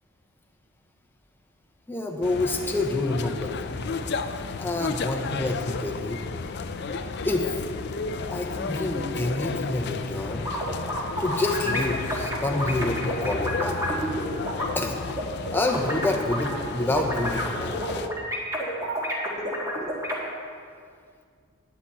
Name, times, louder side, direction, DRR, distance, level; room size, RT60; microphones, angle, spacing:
voice 1, 1.9-3.8 4.6-6.2 7.2-7.6 8.3-10.5 11.2-13.8 14.7-15.0 15.5-17.8, left 2 dB, 10° left, 2 dB, 0.7 m, -28 dB
sound 1, 2.2-18.1, left 4 dB, 50° left, 0.4 m, -33 dB
sound 2, 10.4-14.7 15.1-20.2, equal, 15° right, 1.6 m, -30 dB
9.6 x 9.2 x 4.2 m, 2.1 s
head